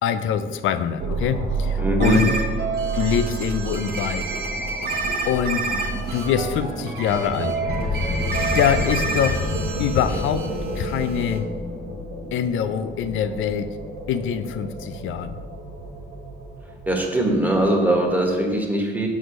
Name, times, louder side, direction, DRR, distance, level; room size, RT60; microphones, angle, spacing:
voice 1, 0.0-2.3 2.9-4.3 5.3-7.6 7.9-9.5 9.8-11.5 12.3-13.8 14.1-15.4, left 8 dB, 80° left, 11 dB, 0.5 m, -24 dB
sound 1, 1.0-18.2, right 3 dB, 90° right, 1.9 m, -31 dB
voice 2, 1.8-2.2 16.9-19.1, right 1 dB, 10° right, 1 dB, 1.4 m, -21 dB
sound 2, 2.0-11.4, right 3 dB, 55° right, 1.1 m, -29 dB
sound 3, 7.6-11.2, left 4 dB, 30° left, 1.2 m, -28 dB
6.2 x 4.8 x 5.2 m, 1.5 s
cardioid pair, 90°, 20 cm